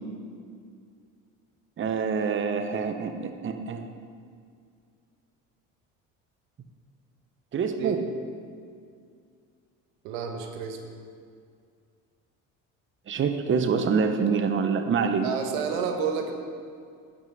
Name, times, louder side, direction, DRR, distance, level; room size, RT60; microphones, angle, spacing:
voice 1, 1.8-3.8 7.5-8.0 13.1-15.3, right 5 dB, 30° right, 7 dB, 0.8 m, -26 dB
voice 2, 10.0-10.8 15.2-16.3, right 6 dB, 85° right, 4 dB, 1.2 m, -30 dB
10.5 x 6.2 x 5.4 m, 2.2 s
supercardioid pair, 75°, 39 cm